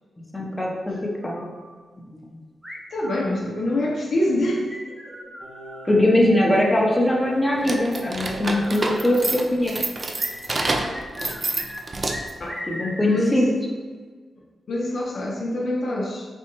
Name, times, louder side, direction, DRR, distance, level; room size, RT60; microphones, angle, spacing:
voice 1, 0.3-1.5 5.8-9.8 12.7-13.5, left 1 dB, 15° left, -2 dB, 0.8 m, -21 dB
sound 1, 0.9-1.7 2.6-3.8 4.7-5.9 6.9-9.3 10.2-11.8 12.1-13.2, left 1 dB, 10° right, 0.9 m, -39 dB
voice 2, 2.9-4.8 5.1-5.2 12.4-12.6 13.0-13.5 14.7-16.3, left 1 dB, 65° left, -3 dB, 0.6 m, -25 dB
Singing, 5.4-9.3 9.6-9.7, right 1 dB, 75° right, 1.0 m, -41 dB
sound 2, 7.6-12.4, right 2 dB, 40° right, 0.4 m, -28 dB
4.2 x 2.3 x 3.0 m, 1.5 s
cardioid pair, 65°, 0 cm